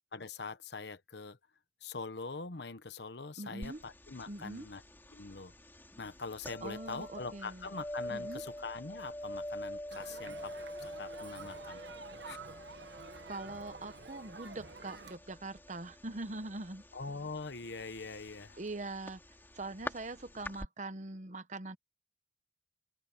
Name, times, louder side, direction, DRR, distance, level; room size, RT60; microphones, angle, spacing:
voice 1, 0.1-1.4 1.8-4.8 5.1-5.5 6.0-10.5 10.8-11.8 12.2-12.4 16.9-18.6, left 4 dB, 65° left, 1.1 m, -43 dB
voice 2, 3.4-3.8 4.3-4.7 6.6-7.7 8.1-8.4 13.3-16.8 18.6-19.2 19.5-21.8, right 2 dB, 40° right, 1.0 m, -42 dB
sound 1, 3.6-20.7, left 1 dB, 10° left, 3.6 m, -47 dB
Crowd, 9.9-15.2, right 4 dB, 70° right, 1.5 m, -49 dB
open air
head